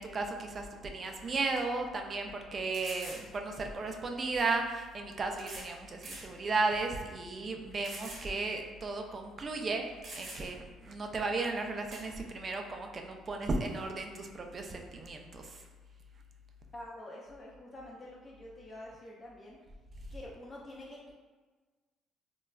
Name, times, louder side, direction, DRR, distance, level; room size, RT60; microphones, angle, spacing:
voice 1, 0.0-9.8 10.1-15.6, right 3 dB, 35° right, 3 dB, 0.4 m, -35 dB
sound 1, 0.9-1.0 1.6-1.7 2.7-3.3 4.4-4.5 5.4-5.7 6.0-6.3 6.8-6.9 7.8-8.3 8.6-8.7 9.6-9.7 10.0-10.7 11.9-12.1, right 2 dB, 55° right, 0.8 m, -45 dB
voice 2, 16.7-19.6 20.1-21.1, left 1 dB, 25° left, -4 dB, 0.4 m, -47 dB
3.1 x 2.3 x 2.2 m, 1.4 s
cardioid pair, 90°, 0 cm